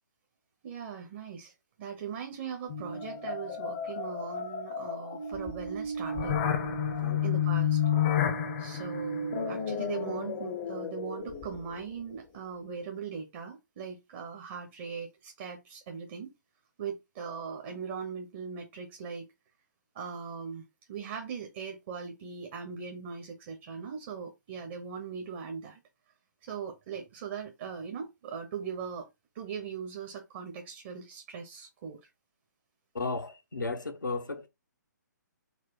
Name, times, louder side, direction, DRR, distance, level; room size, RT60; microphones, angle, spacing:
voice 1, 0.6-1.5 1.8-6.4 7.2-7.8 8.6-16.3 16.8-19.3 19.9-25.8 26.4-29.1 29.3-32.1, right 6 dB, 35° right, 0.8 m, -40 dB
sound 1, 2.7-11.8, left 7 dB, 35° left, 0.7 m, -31 dB
voice 2, 32.9-34.5, left 3 dB, 80° left, 0.9 m, -34 dB
4.2 x 2.1 x 4.5 m
figure-of-eight pair, 135°, 10 cm